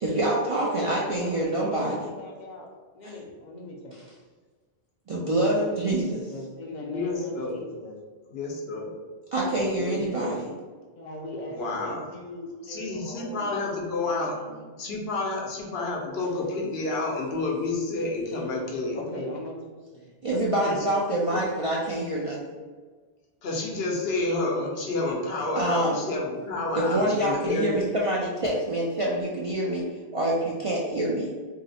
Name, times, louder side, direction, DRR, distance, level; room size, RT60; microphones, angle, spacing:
voice 1, 0.0-2.0 5.1-6.2 9.3-10.4 20.2-22.4 25.6-26.0 26.8-29.8 30.1-31.3, right 1 dB, 50° right, -5 dB, 0.4 m, -26 dB
voice 2, 1.2-2.7 2.9-3.9 5.4-8.0 10.9-13.6 14.0-14.9 18.9-20.1, left 1 dB, 55° left, 0 dB, 0.6 m, -40 dB
voice 3, 6.8-7.6 8.3-8.9 9.8-10.3 11.5-12.1 12.7-14.3 14.8-19.0 20.6-20.8 21.3-21.4 23.4-27.8, left 2 dB, 75° left, -2 dB, 0.9 m, -29 dB
2.8 x 2.0 x 4.0 m, 1.4 s
omnidirectional pair, 1.0 m